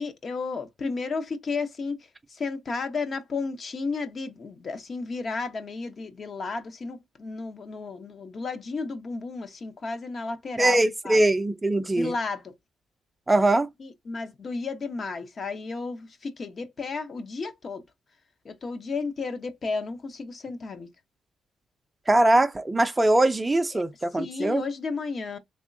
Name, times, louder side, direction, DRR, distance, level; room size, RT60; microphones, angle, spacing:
voice 1, 0.0-2.0 2.3-10.8 11.0-11.2 12.0-12.5 13.8-17.8 18.4-20.9 23.7-23.8 24.1-25.4, left 4 dB, 45° left, 0.8 m, -33 dB
voice 2, 10.6-12.1 13.3-13.7 22.1-24.6, right 1 dB, 15° right, 0.4 m, -22 dB
3.5 x 3.0 x 2.6 m
cardioid pair, 90°, 0 cm